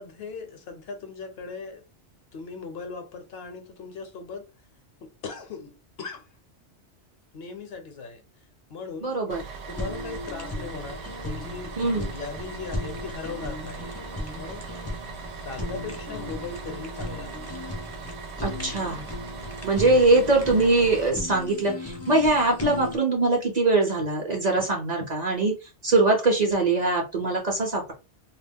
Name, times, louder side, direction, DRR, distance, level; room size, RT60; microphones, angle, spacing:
voice 1, 0.0-1.8 2.3-4.5 5.0-6.3 7.3-8.2 8.7-9.1 9.7-14.0 14.3-14.9 15.4-17.4, left 4 dB, 65° left, 0.8 m, -39 dB
voice 2, 9.0-9.4 11.8-12.1 18.4-19.0 19.6-25.5 25.8-27.9, right 2 dB, 45° right, 0.7 m, -22 dB
Bus, 9.3-21.1, right 4 dB, 75° right, 0.9 m, -40 dB
Fire, 9.7-23.0, left 1 dB, 25° left, 0.4 m, -36 dB
2.3 x 2.0 x 3.5 m
omnidirectional pair, 1.2 m